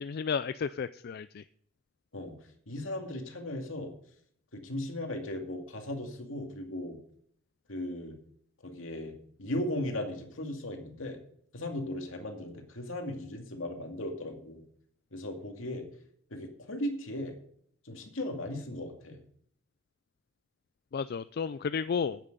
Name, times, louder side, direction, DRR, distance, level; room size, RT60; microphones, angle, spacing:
voice 1, 0.0-1.4 20.9-22.2, left 6 dB, 50° left, 14 dB, 0.4 m, -32 dB
voice 2, 2.7-3.9 4.5-7.0 7.7-8.2 8.6-9.1 9.4-11.2 11.5-14.6 15.1-15.9 16.3-17.3 17.8-19.2, left 1 dB, 75° left, 3 dB, 2.4 m, -37 dB
10.0 x 9.2 x 6.7 m, 0.66 s
head